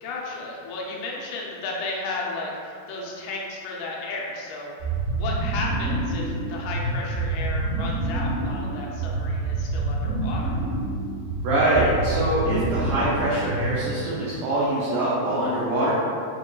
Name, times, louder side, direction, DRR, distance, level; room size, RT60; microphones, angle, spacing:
voice 1, 0.0-4.7 5.1-10.6, left 3 dB, 85° left, -3 dB, 2.6 m, -33 dB
sound 1, 4.8-14.0, right 2 dB, 70° right, 1.6 m, -27 dB
voice 2, 11.4-15.9, right 1 dB, 90° right, -8 dB, 1.8 m, -24 dB
6.2 x 2.2 x 2.3 m, 2.4 s
omnidirectional pair, 4.4 m